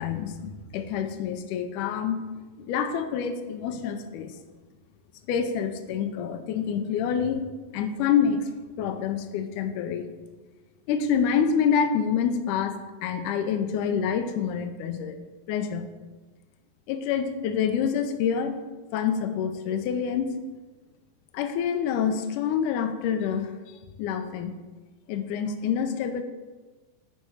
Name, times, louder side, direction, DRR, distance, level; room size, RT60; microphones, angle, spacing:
voice 1, 0.0-2.2 2.6-4.4 5.3-7.5 7.7-8.5 8.8-10.1 10.9-15.2 15.5-15.9 16.9-18.6 18.9-20.4 21.3-24.5 25.1-26.2, left 7 dB, 80° left, 8 dB, 1.9 m, -27 dB
10.5 x 4.3 x 4.8 m, 1.2 s
omnidirectional pair, 4.2 m